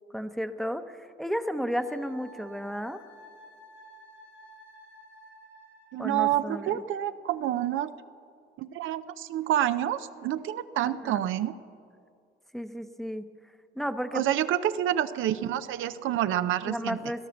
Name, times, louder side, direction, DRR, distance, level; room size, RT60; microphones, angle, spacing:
voice 1, 0.1-3.0 6.0-6.8 10.8-11.3 12.5-13.2 13.8-14.2 16.6-17.3, equal, ahead, 9 dB, 0.7 m, -33 dB
Wind instrument woodwind instrument, 1.7-6.2, right 1 dB, 90° left, 4.7 m, -52 dB
voice 2, 5.9-7.9 8.6-11.5 14.1-17.0, right 12 dB, 80° right, 12 dB, 0.5 m, -28 dB
17.0 x 11.5 x 7.1 m, 2.3 s
cardioid pair, 90°, 20 cm